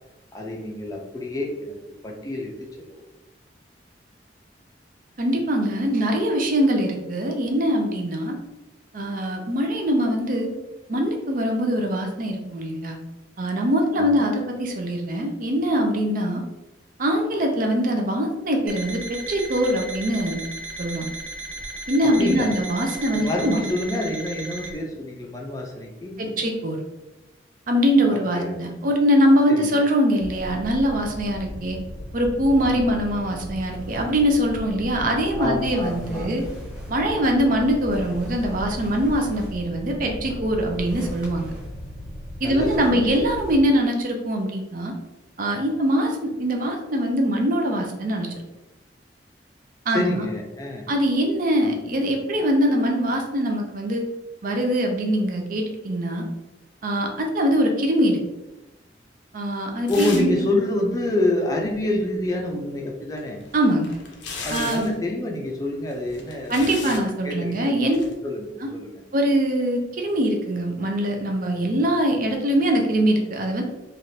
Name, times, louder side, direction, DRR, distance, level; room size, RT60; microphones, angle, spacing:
voice 1, 0.3-1.8 2.0-3.0 13.9-14.2 22.2-22.5 23.1-26.5 28.3-28.6 29.5-29.7 32.6-33.0 35.4-36.3 42.4-43.1 49.9-50.9 59.9-63.4 64.4-67.0 67.2-67.8 68.2-69.0, left 2 dB, 20° left, 0 dB, 0.4 m, -27 dB
voice 2, 5.2-8.4 8.9-10.5 10.9-13.0 13.4-16.4 17.0-20.5 20.8-21.1 21.9-23.6 26.2-26.8 27.7-31.8 32.1-36.4 36.9-41.5 42.4-44.9 45.4-48.3 49.9-50.3 50.9-54.0 54.4-56.2 56.8-58.2 59.3-60.4 63.5-63.9 64.5-64.9 66.5-68.0 68.6-68.7 69.1-73.6, equal, 50° right, 2 dB, 0.5 m, -22 dB
Alarm, 18.7-24.7, right 1 dB, 85° right, 0.7 m, -36 dB
sound 1, 30.2-43.5, equal, 5° right, 1.0 m, -36 dB
sound 2, 59.9-60.4 60.7-60.8 63.2-65.0 65.9-67.1 67.9-68.1, left 4 dB, 85° left, 0.6 m, -35 dB
3.3 x 2.4 x 2.7 m, 0.99 s
head